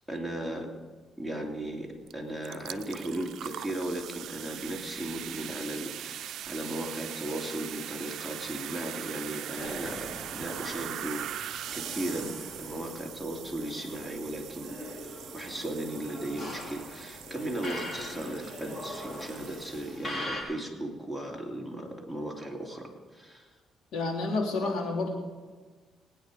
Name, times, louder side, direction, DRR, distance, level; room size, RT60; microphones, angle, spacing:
voice 1, 0.1-0.8 1.2-14.8 15.0-23.5, right 1 dB, 10° left, 1 dB, 2.9 m, -36 dB
sound 1, 2.1-2.2 2.4-20.2, right 11 dB, 75° right, 0.5 m, -41 dB
sound 2, 9.6-20.4, left 1 dB, 30° left, 3.7 m, -42 dB
voice 2, 23.9-25.1, left 3 dB, 75° left, 0 dB, 3.2 m, -29 dB
19.5 x 9.3 x 5.0 m, 1.4 s
cardioid pair, 90°, 0 cm